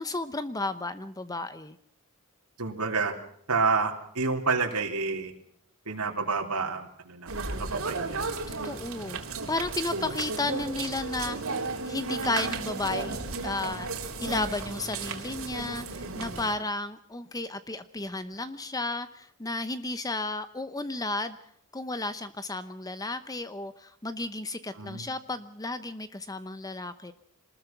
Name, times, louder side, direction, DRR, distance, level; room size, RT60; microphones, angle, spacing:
voice 1, 0.0-1.8 8.6-9.2 9.5-11.4 11.9-21.4 21.7-27.1, left 2 dB, 15° left, 12 dB, 0.9 m, -33 dB
voice 2, 2.6-3.1 3.5-5.3 5.9-7.3 7.6-8.3 24.8-25.0, right 4 dB, 85° right, 1 dB, 3.5 m, -29 dB
sound 1, 7.3-16.5, right 3 dB, 65° right, 3.4 m, -34 dB
26.5 x 20.0 x 6.0 m, 0.66 s
head